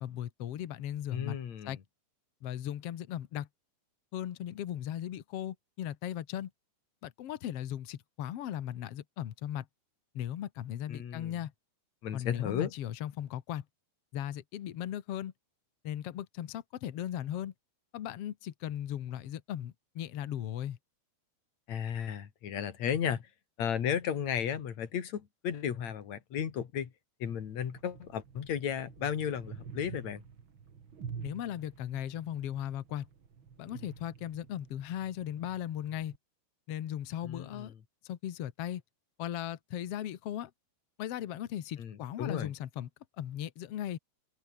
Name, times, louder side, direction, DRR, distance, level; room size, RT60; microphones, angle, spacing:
voice 1, 0.0-1.4 1.6-1.8 2.4-3.5 4.1-6.5 7.0-9.7 10.1-11.5 12.1-13.6 14.1-15.3 15.8-17.5 17.9-20.8 31.2-33.1 33.6-36.1 36.7-37.7 38.0-38.8 39.2-40.5 41.0-42.9 43.2-44.0, left 11 dB, 85° left, 1.3 m, -37 dB
voice 2, 1.1-1.8 10.9-11.3 12.0-12.7 21.7-23.3 23.6-26.9 27.2-30.2 37.2-37.7 41.8-42.5, left 8 dB, 50° left, 3.0 m, -34 dB
sound 1, 27.2-36.2, right 6 dB, 40° right, 2.3 m, -49 dB
open air
omnidirectional pair, 4.7 m